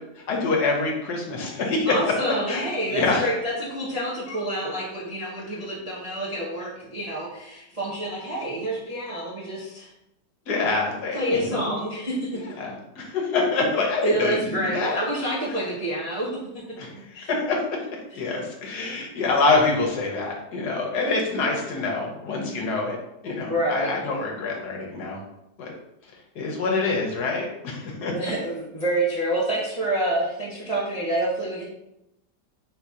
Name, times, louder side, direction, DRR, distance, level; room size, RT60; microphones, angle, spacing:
voice 1, 0.3-2.0 2.5-3.3 4.3-4.4 10.5-11.7 12.3-15.0 16.8-17.6 18.1-23.0 23.2-25.2 25.6-25.7 26.3-28.1, left 3 dB, 65° left, 0 dB, 1.4 m, -26 dB
voice 2, 1.9-9.9 11.1-12.5 14.0-16.6 17.1-17.3 20.7-20.8 23.5-23.9 28.0-31.6, right 1 dB, 35° right, -7 dB, 0.6 m, -28 dB
3.8 x 2.8 x 4.8 m, 0.86 s
omnidirectional pair, 1.9 m